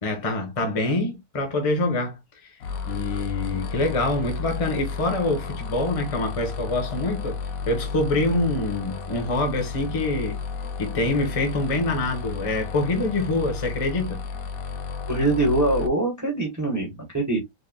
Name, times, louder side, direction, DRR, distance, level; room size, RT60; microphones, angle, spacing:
voice 1, 0.0-2.6 2.9-7.4 7.7-10.4 10.8-14.2, left 2 dB, 25° left, 1.1 m, -25 dB
sound 1, 2.6-15.9, left 5 dB, 60° left, 1.1 m, -32 dB
voice 2, 15.1-17.4, right 2 dB, 10° right, 1.3 m, -23 dB
4.5 x 3.6 x 2.3 m
omnidirectional pair, 1.8 m